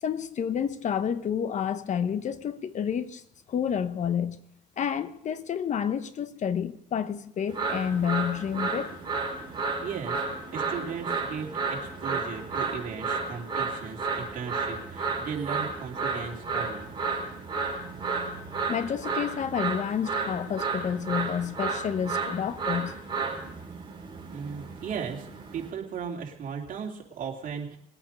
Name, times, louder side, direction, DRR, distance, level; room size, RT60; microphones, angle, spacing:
voice 1, 0.0-3.2 3.5-4.4 4.8-8.9 18.7-23.0, left 8 dB, 45° left, 1.0 m, -29 dB
sound 1, 7.5-25.7, right 4 dB, 25° right, 3.7 m, -32 dB
voice 2, 9.8-10.2 10.5-16.9 24.3-25.3 25.5-27.8, right 6 dB, 55° right, 2.9 m, -36 dB
21.5 x 8.9 x 5.3 m
cardioid pair, 110°, 17 cm